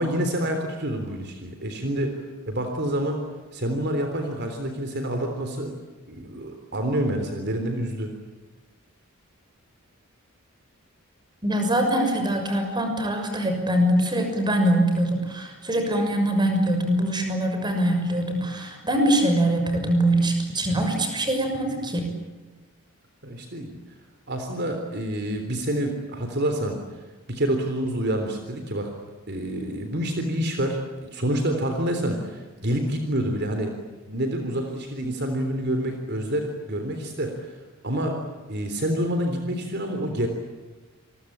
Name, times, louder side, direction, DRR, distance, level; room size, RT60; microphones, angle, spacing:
voice 1, 0.0-2.2 2.5-3.2 3.5-5.8 6.1-8.1 23.2-23.8 24.3-26.8 27.3-28.9 29.3-33.7 34.1-37.5 37.8-38.2 38.5-40.3, right 1 dB, 50° right, 5 dB, 3.6 m, -27 dB
voice 2, 11.4-22.1, right 1 dB, 20° right, 5 dB, 6.5 m, -23 dB
28.0 x 22.5 x 8.9 m, 1.2 s
head